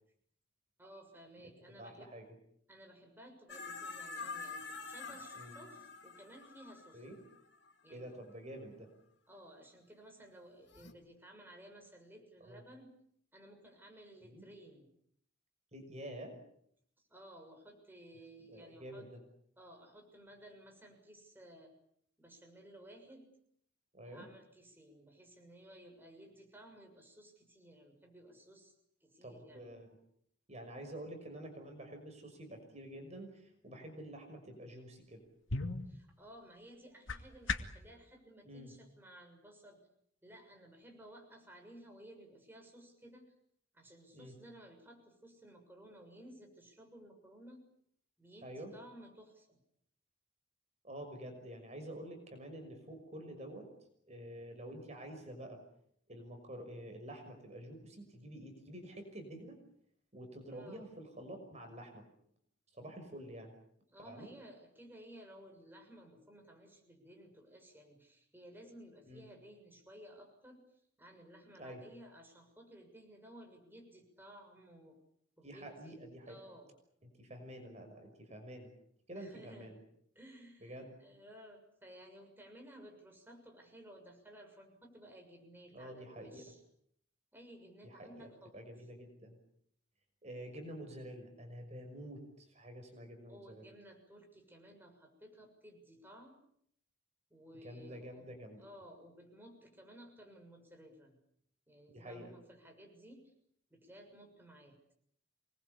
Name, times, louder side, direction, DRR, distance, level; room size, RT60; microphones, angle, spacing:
voice 1, 0.8-2.1 2.7-7.0 7.8-8.2 9.3-12.9 13.3-14.9 17.1-19.1 19.6-21.7 22.2-23.3 24.0-28.7 29.0-29.7 35.8-39.8 40.2-43.2 43.7-47.6 48.2-49.6 60.5-60.9 63.9-70.6 71.0-75.0 75.4-76.7 79.1-79.7 80.1-86.6 87.3-88.5 93.3-96.4 97.3-98.3 98.6-101.2 101.7-103.3 103.7-104.8, right 1 dB, 10° right, 2 dB, 6.7 m, -56 dB
voice 2, 1.8-2.3 5.4-5.5 6.9-7.2 7.9-8.9 12.4-12.6 14.2-14.4 15.7-16.4 18.5-19.2 23.9-24.3 29.2-30.0 30.5-35.2 38.4-38.7 44.1-44.3 48.4-48.7 50.8-53.7 54.1-55.6 56.1-59.6 60.1-62.0 62.7-63.5 64.0-64.3 69.1-69.2 71.6-71.8 75.4-76.4 77.0-78.7 79.1-79.8 80.6-80.9 85.7-86.4 87.8-89.4 90.2-93.6 97.5-98.7 101.9-102.3, right 1 dB, 35° right, 5 dB, 6.0 m, -48 dB
sound 1, 3.5-7.9 10.7-10.9, left 4 dB, 60° left, 3.1 m, -46 dB
sound 2, 35.0-37.9, left 3 dB, 80° left, 2.5 m, -40 dB
28.0 x 21.5 x 8.5 m, 0.69 s
head